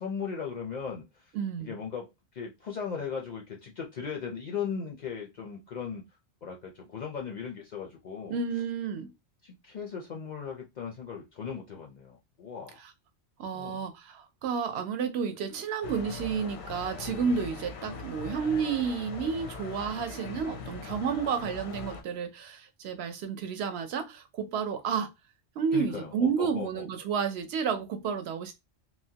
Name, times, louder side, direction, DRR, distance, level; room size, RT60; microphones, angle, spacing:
voice 1, 0.0-1.3 1.6-6.0 6.4-8.4 9.4-12.8 13.5-13.9 25.7-26.8, left 6 dB, 55° left, 0.5 m, -38 dB
voice 2, 1.3-1.8 8.3-9.1 12.8-12.9 13.4-25.1 25.6-28.5, right 6 dB, 70° right, 0.8 m, -31 dB
sound 1, 15.8-22.0, left 5 dB, 85° left, 0.9 m, -41 dB
3.0 x 2.1 x 2.7 m
omnidirectional pair, 1.2 m